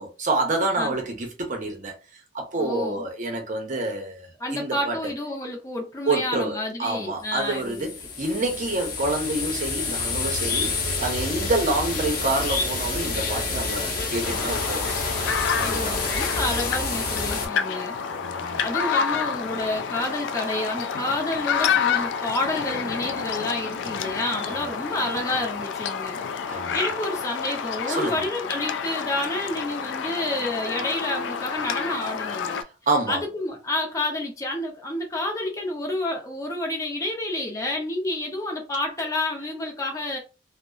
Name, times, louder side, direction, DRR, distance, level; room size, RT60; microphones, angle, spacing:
voice 1, 0.0-1.9 2.3-5.1 6.1-15.3 15.6-16.2 18.1-18.7 24.5-24.6 26.5-26.8 27.9-28.2 32.9-33.2, right 2 dB, 45° right, 0.7 m, -28 dB
voice 2, 2.6-3.0 4.4-7.9 15.6-18.0 18.4-26.2 26.5-32.6 33.1-40.2, left 1 dB, 20° left, 0.5 m, -29 dB
sound 1, 7.4-17.5, left 3 dB, 55° left, 0.7 m, -28 dB
sound 2, 14.2-32.6, left 6 dB, 80° left, 0.3 m, -29 dB
2.7 x 2.0 x 2.3 m
head